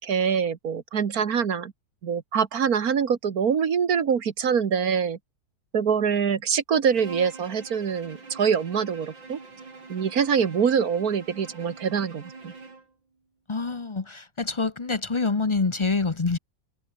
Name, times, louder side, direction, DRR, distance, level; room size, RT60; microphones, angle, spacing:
voice 1, 0.0-1.7 2.0-5.2 5.7-9.4 9.9-12.5, right 7 dB, 55° right, 1.8 m, -24 dB
Bowed string instrument, 6.9-12.9, right 4 dB, 80° right, 5.0 m, -44 dB
voice 2, 13.5-16.4, left 4 dB, 35° left, 0.4 m, -26 dB
omnidirectional pair, 2.0 m